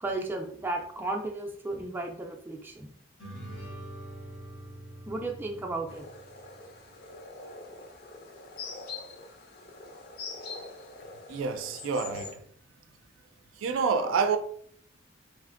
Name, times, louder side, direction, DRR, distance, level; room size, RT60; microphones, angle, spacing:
voice 1, 0.0-2.9 5.1-6.1, right 2 dB, 10° right, 0.3 m, -34 dB
sound 1, 3.2-6.8, right 1 dB, 90° left, 1.2 m, -44 dB
sound 2, 5.9-12.3, left 4 dB, 55° left, 0.5 m, -44 dB
voice 2, 11.3-12.4 13.6-14.4, right 5 dB, 90° right, 0.3 m, -28 dB
3.1 x 2.5 x 2.4 m
head